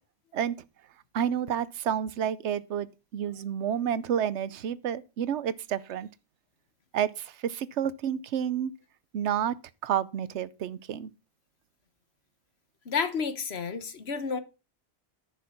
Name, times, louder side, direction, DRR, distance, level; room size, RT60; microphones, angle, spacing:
voice 1, 1.1-6.1 6.9-8.7 9.1-9.6 9.8-11.1, right 9 dB, 90° right, 1.0 m, -30 dB
voice 2, 12.8-14.4, left 5 dB, 70° left, 1.4 m, -30 dB
10.5 x 6.2 x 5.8 m
omnidirectional pair, 1.1 m